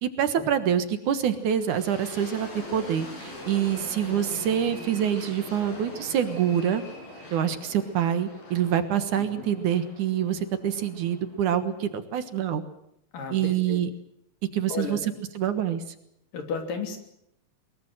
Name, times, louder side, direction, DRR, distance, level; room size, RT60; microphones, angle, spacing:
voice 1, 0.0-6.8 7.3-12.6 13.3-13.9 14.5-15.0 15.4-15.8, right 9 dB, 65° right, 10 dB, 2.7 m, -26 dB
sound 1, 1.3-12.2, left 1 dB, 85° left, 9.4 m, -43 dB
sound 2, 3.2-4.0 4.3-5.3 6.2-7.3, equal, 25° left, 5.1 m, -51 dB
voice 2, 13.1-13.8 14.7-15.0 16.3-17.0, left 5 dB, 70° left, 5 dB, 4.8 m, -33 dB
22.5 x 21.5 x 7.8 m, 0.77 s
omnidirectional pair, 4.1 m